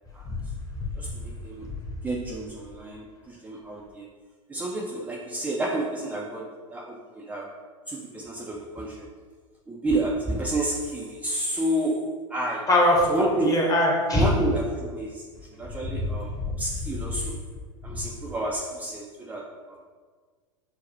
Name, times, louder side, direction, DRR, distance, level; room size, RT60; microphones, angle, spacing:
voice 1, 1.0-1.7 2.0-4.1 4.5-7.6 7.9-9.1 9.7-12.7 13.1-13.6 14.1-16.3 16.6-17.4 17.8-19.8, right 1 dB, 10° right, -3 dB, 0.4 m, -30 dB
voice 2, 12.7-13.2 13.5-14.3, left 1 dB, 20° left, -2 dB, 1.1 m, -20 dB
6.2 x 2.1 x 3.2 m, 1.5 s
hypercardioid pair, 95°, 17 cm